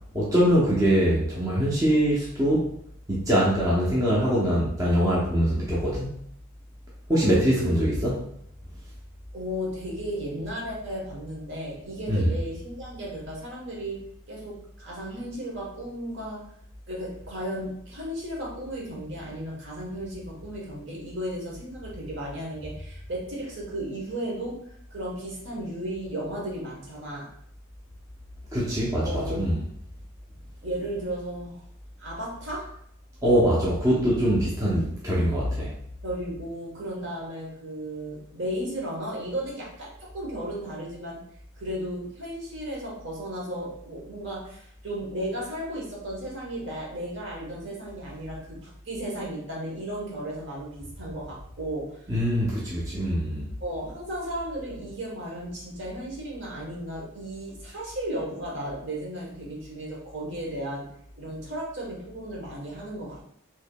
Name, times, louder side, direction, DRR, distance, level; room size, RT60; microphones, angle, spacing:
voice 1, 0.1-2.7 3.1-6.2 7.1-8.2 12.1-12.3 28.5-29.6 33.2-35.7 52.1-53.5, equal, 15° right, -6 dB, 0.6 m, -23 dB
voice 2, 7.2-7.7 9.3-16.5 16.9-24.6 24.9-27.3 29.0-29.6 30.6-31.6 32.0-32.8 36.0-41.2 41.6-52.1 53.6-63.2, right 1 dB, 55° right, -3 dB, 1.1 m, -35 dB
4.4 x 2.8 x 2.2 m, 0.70 s
head